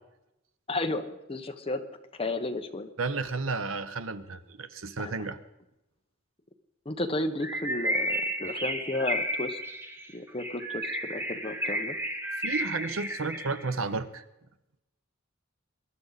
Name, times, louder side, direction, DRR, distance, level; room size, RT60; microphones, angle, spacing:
voice 1, 0.7-1.8 2.1-2.9 5.0-5.1 6.8-9.6 10.1-12.0, left 2 dB, 30° left, 6 dB, 1.1 m, -33 dB
voice 2, 3.0-5.4 12.4-14.3, right 4 dB, 80° right, 12 dB, 0.9 m, -32 dB
Bird, 7.4-13.7, equal, 10° right, 1.1 m, -32 dB
22.0 x 11.5 x 4.1 m, 0.92 s
head